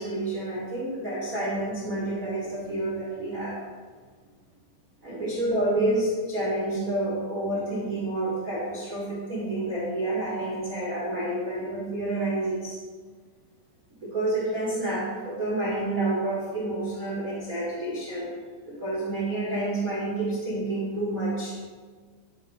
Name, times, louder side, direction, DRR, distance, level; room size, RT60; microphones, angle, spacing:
voice 1, 0.0-3.6 5.0-12.8 14.0-18.3 18.7-21.6, right 2 dB, 60° right, -6 dB, 0.8 m, -29 dB
12.0 x 4.7 x 5.0 m, 1.5 s
omnidirectional pair, 5.5 m